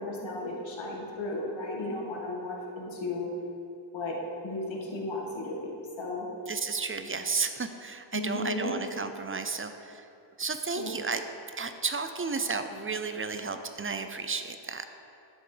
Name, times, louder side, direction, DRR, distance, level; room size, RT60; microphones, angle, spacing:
voice 1, 0.0-3.3 3.9-4.2 4.4-6.3 8.1-8.8 10.8-10.9, left 2 dB, 85° left, -2 dB, 1.9 m, -34 dB
voice 2, 6.5-10.1 10.4-11.3 11.6-14.8, right 4 dB, 30° right, 8 dB, 0.5 m, -33 dB
11.0 x 7.3 x 5.0 m, 2.8 s
wide cardioid pair, 145°, 45 cm